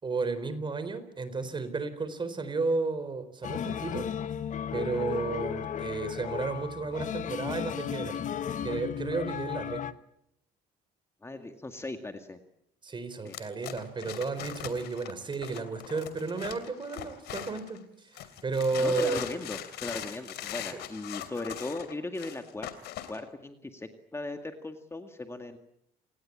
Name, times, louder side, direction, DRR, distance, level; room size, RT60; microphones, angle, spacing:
voice 1, 0.0-4.1 4.7-8.2 8.6-9.8 12.8-19.2, right 3 dB, 30° right, 12 dB, 4.1 m, -32 dB
sound 1, 3.4-9.9, left 9 dB, 50° left, 1.2 m, -35 dB
voice 2, 11.2-12.4 13.2-13.4 18.8-22.7 23.1-25.6, left 2 dB, 15° left, 6 dB, 2.0 m, -38 dB
sound 2, 13.3-17.8 18.2-23.2, left 12 dB, 80° left, 3.0 m, -41 dB
28.5 x 19.5 x 8.8 m, 0.78 s
cardioid pair, 110°, 17 cm